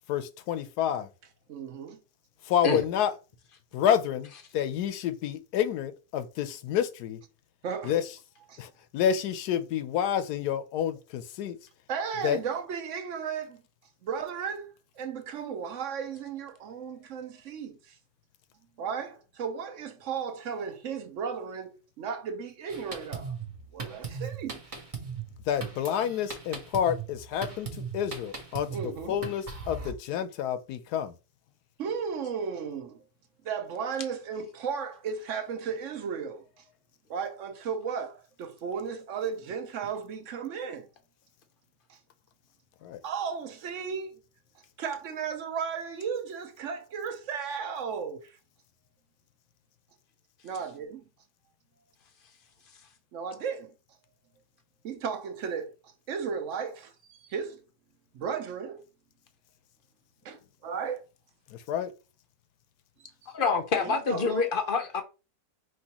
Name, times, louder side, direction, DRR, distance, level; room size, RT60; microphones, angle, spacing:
voice 1, 0.1-1.1 2.5-3.1 3.7-7.2 7.8-8.0 8.6-11.6 12.2-12.4 25.5-27.7 27.9-31.1 42.8-43.0 61.7-61.9, left 9 dB, 75° left, 1.1 m, -29 dB
voice 2, 1.5-2.0 7.6-8.0 8.5-8.6 11.9-13.6 14.0-18.0 18.8-23.3 23.7-24.6 28.7-29.1 31.8-33.0 33.4-36.6 37.1-40.9 41.9-42.0 43.0-44.2 44.8-48.4 50.4-51.0 53.1-53.7 54.8-57.6 58.1-58.8 60.2-61.0 63.2-63.3 63.7-64.5, right 6 dB, 60° right, 0.9 m, -35 dB
Drum kit, 22.7-29.9, right 5 dB, 30° right, 0.7 m, -39 dB
voice 3, 63.3-65.0, left 4 dB, 50° left, 0.6 m, -26 dB
5.4 x 3.1 x 2.9 m
omnidirectional pair, 1.8 m